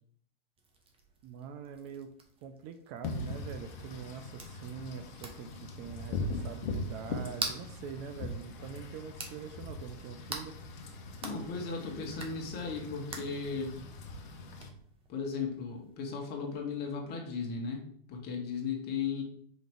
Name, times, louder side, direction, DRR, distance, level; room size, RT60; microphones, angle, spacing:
sound 1, 0.6-16.9, right 3 dB, 20° right, 1.1 m, -47 dB
voice 1, 1.2-2.1 2.4-10.5, right 7 dB, 40° right, 8 dB, 0.7 m, -44 dB
Wind / Rain, 3.0-14.7, left 2 dB, 55° left, 1.2 m, -41 dB
voice 2, 11.2-13.8 15.1-19.2, left 5 dB, 35° left, 1 dB, 1.9 m, -36 dB
5.1 x 3.8 x 4.8 m, 0.64 s
hypercardioid pair, 115°, 29 cm